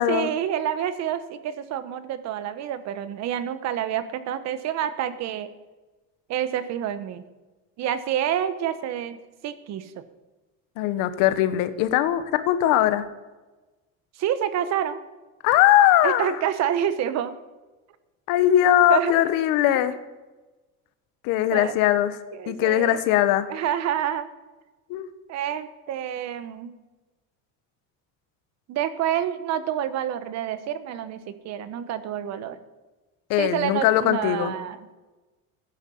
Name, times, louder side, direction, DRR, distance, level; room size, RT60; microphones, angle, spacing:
voice 1, 0.1-5.5 6.3-7.3 7.8-9.2 9.4-10.0 14.2-15.0 16.0-17.3 18.9-19.1 19.7-19.8 21.5-21.7 22.3-23.0 23.5-24.3 25.3-26.7 28.7-32.6 33.4-34.8, right 10 dB, 50° right, 12 dB, 1.2 m, -28 dB
voice 2, 10.8-13.0 15.4-16.3 18.3-20.0 21.2-22.2 22.5-23.5 24.9-25.1 33.3-34.5, left 12 dB, 75° left, 13 dB, 1.2 m, -20 dB
15.0 x 10.5 x 7.1 m, 1.2 s
cardioid pair, 155°, 33 cm